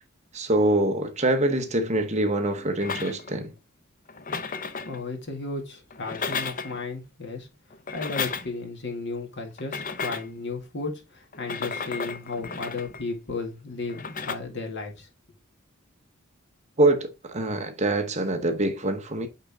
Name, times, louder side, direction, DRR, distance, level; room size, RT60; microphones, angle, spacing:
voice 1, 0.3-3.5 16.8-19.3, right 1 dB, 35° right, 1.0 m, -24 dB
sound 1, 2.8-3.4 4.1-5.0 5.9-6.8 7.7-8.7 9.6-10.4 11.3-13.1 13.9-14.3, left 5 dB, 40° left, 0.7 m, -33 dB
voice 2, 4.8-7.5 7.9-15.1, left 3 dB, 55° left, 2.0 m, -34 dB
8.7 x 3.8 x 3.5 m
head